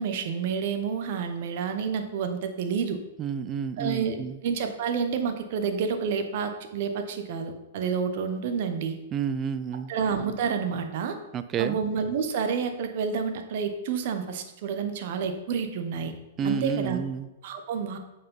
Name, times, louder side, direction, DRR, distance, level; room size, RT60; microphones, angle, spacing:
voice 1, 0.0-3.0 3.8-4.2 4.4-8.9 9.9-11.2 11.6-16.1 16.4-17.0 17.4-18.0, right 6 dB, 55° right, 7 dB, 1.3 m, -29 dB
voice 2, 3.2-4.4 9.1-9.9 11.3-11.8 16.4-17.3, right 7 dB, 25° right, 12 dB, 0.6 m, -30 dB
9.0 x 5.5 x 5.7 m, 1.0 s
hypercardioid pair, 135°, 0 cm